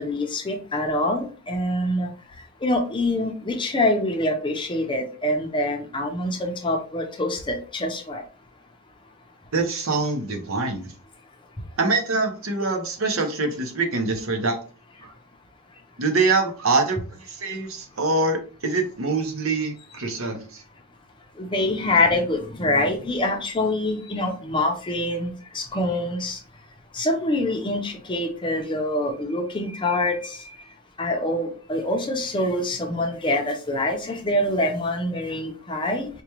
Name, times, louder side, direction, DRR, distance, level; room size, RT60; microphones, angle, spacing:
voice 1, 0.0-2.1 2.6-8.2 21.4-26.4 26.9-30.4 31.0-36.1, left 1 dB, 25° left, 3 dB, 0.6 m, -25 dB
voice 2, 9.5-10.9 11.8-14.6 15.0-15.1 16.0-20.6, right 3 dB, 70° right, 5 dB, 0.8 m, -24 dB
4.9 x 2.2 x 2.9 m, 0.38 s
head